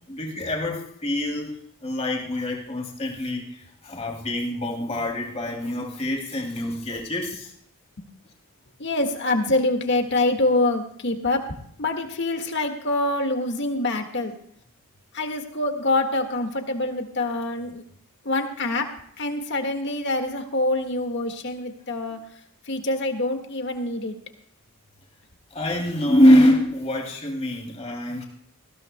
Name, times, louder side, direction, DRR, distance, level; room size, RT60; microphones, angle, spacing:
voice 1, 0.1-1.6 1.8-7.5 25.5-28.2, equal, 30° left, -1 dB, 2.8 m, -24 dB
voice 2, 8.8-11.4 11.8-14.3 15.1-17.8 18.3-18.9 19.2-22.2 22.7-24.2, left 2 dB, 50° left, 5 dB, 1.7 m, -25 dB
20.0 x 15.5 x 2.2 m, 0.68 s
head